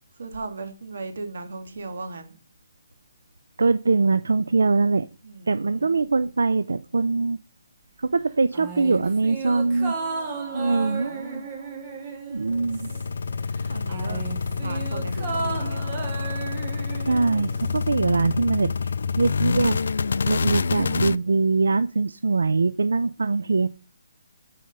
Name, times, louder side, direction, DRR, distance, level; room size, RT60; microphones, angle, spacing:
voice 1, 0.2-2.3 5.2-6.0 10.7-11.4 13.7-14.2 14.6-15.9 23.2-23.7, right 3 dB, 60° right, 1.7 m, -37 dB
voice 2, 3.6-5.1 5.5-7.4 8.0-10.0 10.5-11.1 12.3-12.9 17.0-19.8 20.3-23.7, right 3 dB, 90° right, 0.4 m, -22 dB
sound 1, 8.5-13.3 13.6-17.9 18.2-18.3, right 4 dB, 25° right, 1.6 m, -34 dB
sound 2, 12.4-21.2, left 5 dB, 70° left, 0.4 m, -27 dB
6.9 x 5.0 x 5.5 m
hypercardioid pair, 165°, 0 cm